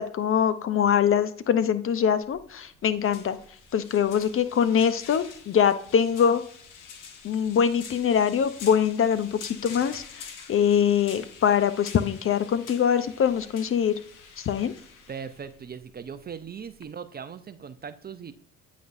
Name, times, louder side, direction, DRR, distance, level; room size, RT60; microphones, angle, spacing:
voice 1, 0.0-3.4 3.7-6.4 7.2-14.0 14.4-14.7, left 8 dB, 40° left, 13 dB, 0.5 m, -23 dB
sound 1, 2.2-16.8, left 6 dB, 65° left, 1.1 m, -47 dB
voice 2, 15.1-18.3, right 6 dB, 30° right, 12 dB, 0.5 m, -39 dB
9.1 x 4.1 x 2.5 m, 0.62 s
hypercardioid pair, 55°, 35 cm